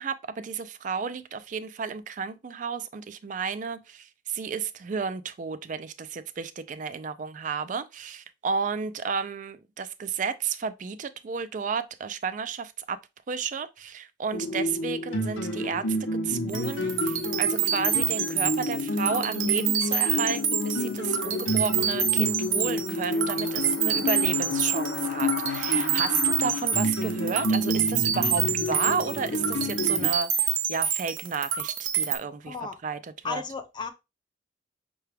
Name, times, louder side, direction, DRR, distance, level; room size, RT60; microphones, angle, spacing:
voice 1, 0.0-13.0 13.3-32.6 32.8-33.4, right 6 dB, 40° right, 0.3 m, -32 dB
sound 1, 14.3-30.1, left 1 dB, 80° left, 0.7 m, -29 dB
sound 2, 16.5-32.2, right 8 dB, 90° right, 0.5 m, -27 dB
voice 2, 32.5-32.8 33.2-33.9, left 4 dB, 25° left, 0.5 m, -34 dB
5.7 x 2.3 x 3.3 m
head